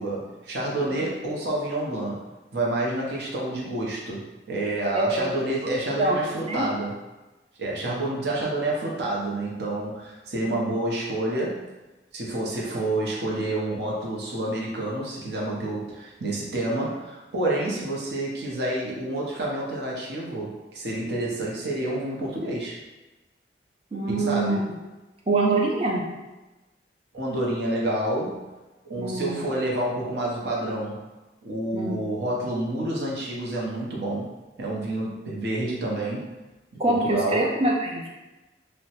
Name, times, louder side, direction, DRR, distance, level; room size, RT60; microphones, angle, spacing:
voice 1, 0.0-2.3 2.5-7.0 7.6-11.7 12.1-22.8 24.1-24.6 27.1-28.4 28.9-31.0 31.4-34.3 34.6-36.3 36.9-37.5, right 1 dB, 70° right, -4 dB, 0.6 m, -28 dB
voice 2, 4.9-5.3 5.6-6.2 6.5-6.6 10.5-10.6 23.9-24.6 25.3-26.0 29.0-29.4 31.7-32.0 36.8-38.1, right 2 dB, 35° right, -1 dB, 0.4 m, -25 dB
2.8 x 2.1 x 2.8 m, 1.1 s
head